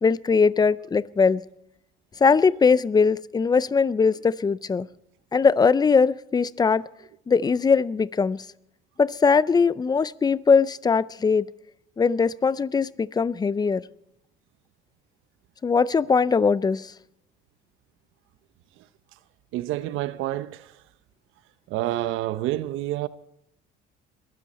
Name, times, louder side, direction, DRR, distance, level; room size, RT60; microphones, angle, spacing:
voice 1, 0.0-1.4 2.2-4.9 5.3-6.9 7.3-8.5 9.0-11.4 12.0-13.8 15.6-16.9, left 5 dB, 20° left, 0.5 m, -21 dB
voice 2, 19.5-20.7 21.7-23.1, right 15 dB, 75° right, 0.8 m, -28 dB
22.0 x 12.5 x 4.2 m
cardioid pair, 115°, 21 cm